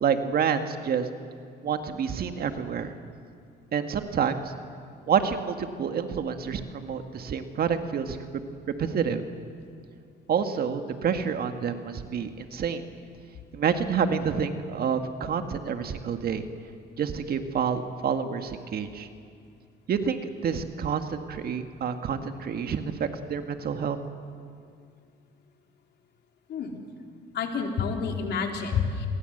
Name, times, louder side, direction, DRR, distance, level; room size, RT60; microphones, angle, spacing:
voice 1, 0.0-1.1 1.6-2.9 3.7-4.4 5.1-8.2 8.7-9.2 10.3-12.8 13.5-16.4 17.0-19.1 19.9-24.0, right 7 dB, 55° right, 7 dB, 1.9 m, -28 dB
voice 2, 27.3-29.1, left 5 dB, 65° left, 2 dB, 3.9 m, -28 dB
28.5 x 22.5 x 8.0 m, 2.3 s
cardioid pair, 100°, 19 cm